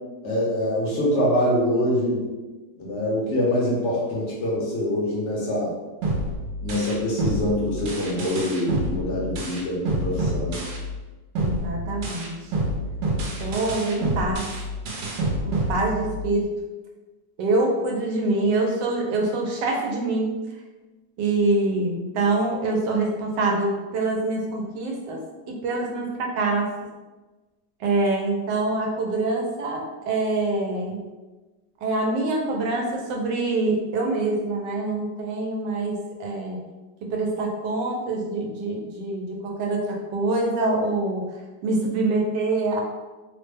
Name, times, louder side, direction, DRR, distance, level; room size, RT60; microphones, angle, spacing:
voice 1, 0.2-2.2 2.8-5.7 6.6-10.6, left 1 dB, 55° left, -4 dB, 0.9 m, -24 dB
sound 1, 6.0-11.0 11.3-16.4, right 1 dB, 70° right, 1.2 m, -28 dB
voice 2, 11.4-12.7 13.4-14.5 15.4-16.5 17.4-20.4 21.2-25.2 25.5-26.7 27.8-31.0 31.8-36.6 37.0-41.3 41.6-42.8, right 2 dB, 90° right, 0 dB, 1.3 m, -25 dB
3.3 x 2.1 x 3.3 m, 1.2 s
omnidirectional pair, 1.9 m